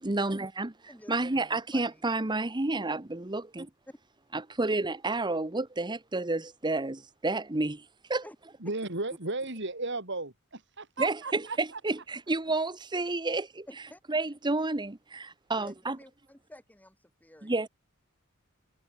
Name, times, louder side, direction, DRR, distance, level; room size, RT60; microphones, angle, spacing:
voice 1, 0.0-3.7 4.3-8.2 11.0-13.7 14.1-16.0 17.4-17.7, right 2 dB, 20° right, 1.1 m, -30 dB
voice 2, 8.6-11.8, right 2 dB, 60° right, 5.5 m, -35 dB
voice 3, 13.7-14.0 15.6-17.5, left 1 dB, 10° left, 5.2 m, -50 dB
head